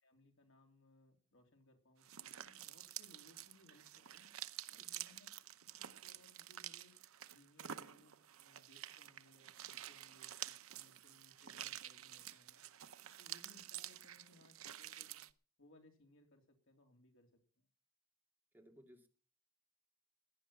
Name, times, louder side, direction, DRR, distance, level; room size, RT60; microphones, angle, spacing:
voice 1, 0.0-4.3 4.7-5.3 5.6-6.9 7.3-12.6 13.2-15.2 15.6-17.7, left 1 dB, 65° left, 4 dB, 3.6 m, -67 dB
sound 1, 2.0-15.3, right 12 dB, 75° right, 0.8 m, -50 dB
voice 2, 18.5-19.1, equal, 10° right, 3 dB, 2.7 m, -61 dB
17.0 x 11.0 x 5.7 m, 0.41 s
head